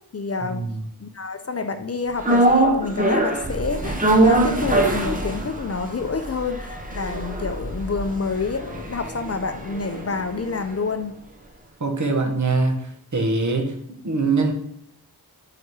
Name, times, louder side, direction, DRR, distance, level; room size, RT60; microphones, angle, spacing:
voice 1, 0.1-0.6 1.0-11.1, left 4 dB, 40° left, 9 dB, 0.5 m, -28 dB
sound 1, 2.2-10.5 10.8-10.9, right 2 dB, 20° right, 0.9 m, -23 dB
voice 2, 11.8-12.8 13.1-13.7 14.0-14.5, right 3 dB, 50° right, 3 dB, 1.1 m, -22 dB
4.9 x 4.2 x 4.7 m, 0.68 s
wide cardioid pair, 60°, 38 cm